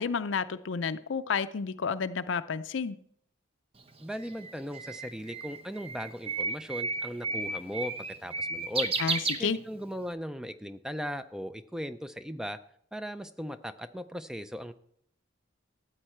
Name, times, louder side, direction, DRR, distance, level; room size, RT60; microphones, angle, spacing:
voice 1, 0.0-3.0 9.0-9.6, left 5 dB, 75° left, 11 dB, 0.5 m, -31 dB
Bird, 3.8-10.0, right 3 dB, 30° right, 0.8 m, -33 dB
voice 2, 4.0-7.9 8.2-8.9 9.4-12.6 12.9-14.7, equal, 5° right, 11 dB, 0.4 m, -37 dB
13.0 x 8.8 x 4.4 m, 0.67 s
head